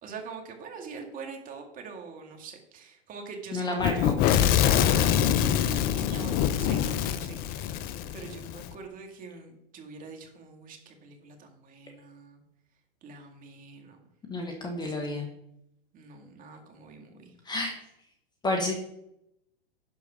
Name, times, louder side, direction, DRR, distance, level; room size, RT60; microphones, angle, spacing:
voice 1, 0.0-7.8 8.1-12.4 13.0-14.1 14.8-14.9 15.9-17.4, right 5 dB, 30° right, 3 dB, 2.2 m, -44 dB
voice 2, 3.5-4.2 14.3-15.3 17.4-17.7 18.4-18.7, left 2 dB, 15° left, 2 dB, 1.5 m, -30 dB
Fire / Explosion, 3.8-8.7, left 10 dB, 30° left, 0.6 m, -25 dB
11.0 x 4.6 x 5.9 m, 0.81 s
hypercardioid pair, 110°, 30 cm